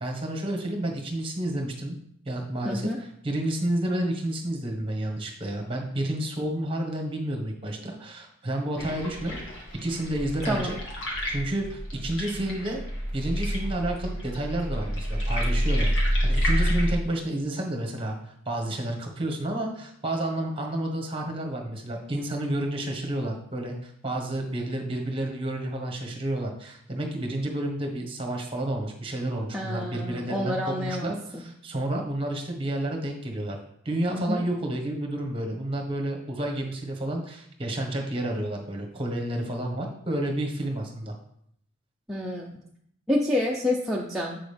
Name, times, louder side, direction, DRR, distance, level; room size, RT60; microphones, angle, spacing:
voice 1, 0.0-2.0 2.2-9.4 9.8-10.7 11.3-12.8 13.1-33.6 33.8-41.2, right 1 dB, 25° right, 1 dB, 1.3 m, -30 dB
voice 2, 2.6-3.0 10.5-10.7 29.5-31.4 34.1-34.4 42.1-42.5 43.1-44.4, left 1 dB, ahead, -4 dB, 0.6 m, -28 dB
sound 1, 8.8-16.9, equal, 60° left, 1.9 m, -28 dB
7.9 x 6.3 x 3.4 m, 0.69 s
head